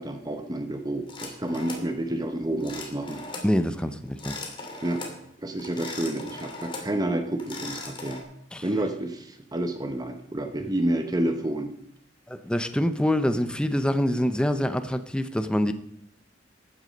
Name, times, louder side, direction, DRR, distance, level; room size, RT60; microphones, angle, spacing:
voice 1, 0.0-3.2 4.8-5.1 5.4-8.2 8.6-11.7, right 1 dB, 20° right, 7 dB, 1.0 m, -29 dB
sound 1, 1.1-1.9 2.6-3.5 4.1-5.2 5.6-6.9 7.3-8.2, left 3 dB, 30° left, 2.9 m, -39 dB
voice 2, 3.4-4.4 8.5-8.7 12.3-15.7, equal, 5° left, 9 dB, 0.7 m, -25 dB
14.0 x 9.6 x 5.3 m, 0.75 s
head